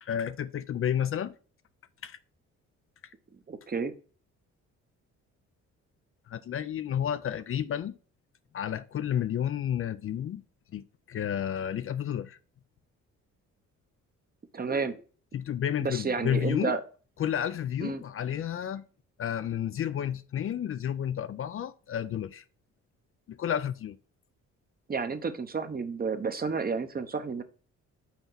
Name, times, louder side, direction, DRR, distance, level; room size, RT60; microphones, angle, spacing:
voice 1, 0.0-1.3 2.0-2.2 6.3-8.0 8.5-10.4 10.7-12.4 15.3-16.7 17.2-18.8 19.2-22.4 23.3-24.0, left 9 dB, 45° left, 0.5 m, -31 dB
voice 2, 3.5-3.9 14.5-15.0 15.8-16.8 17.8-18.0 24.9-27.4, right 5 dB, 30° right, 0.9 m, -31 dB
5.8 x 4.4 x 5.7 m
cardioid pair, 90°, 30 cm